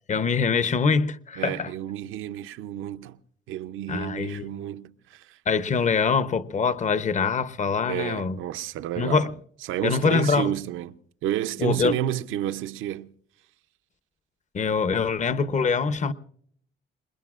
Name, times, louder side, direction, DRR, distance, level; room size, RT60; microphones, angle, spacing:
voice 1, 0.1-1.7 3.9-4.4 5.5-8.4 9.0-9.3 9.8-10.5 11.6-12.0 14.5-16.1, left 5 dB, 35° left, 0.8 m, -24 dB
voice 2, 1.4-3.2 3.5-5.4 7.8-9.3 9.6-13.1, right 12 dB, 85° right, 0.6 m, -30 dB
26.5 x 21.0 x 2.4 m
cardioid pair, 90°, 20 cm